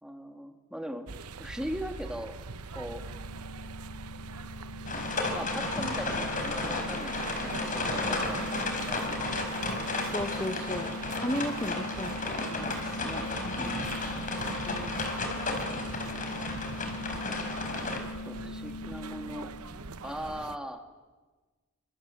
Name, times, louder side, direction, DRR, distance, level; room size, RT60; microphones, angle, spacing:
voice 1, 0.0-1.1 1.4-2.3 2.7-3.0 5.3-9.3 13.6-14.0 18.2-19.5 20.0-20.8, equal, 5° right, 5 dB, 2.2 m, -39 dB
sound 1, 1.1-20.6, right 4 dB, 90° right, 1.0 m, -42 dB
sound 2, 2.7-20.2, left 2 dB, 85° left, 1.0 m, -42 dB
sound 3, 4.9-18.0, left 2 dB, 35° left, 4.6 m, -33 dB
voice 2, 10.1-13.3 14.6-15.0, left 1 dB, 15° left, 6 dB, 1.0 m, -36 dB
29.5 x 26.0 x 7.7 m, 1.3 s
head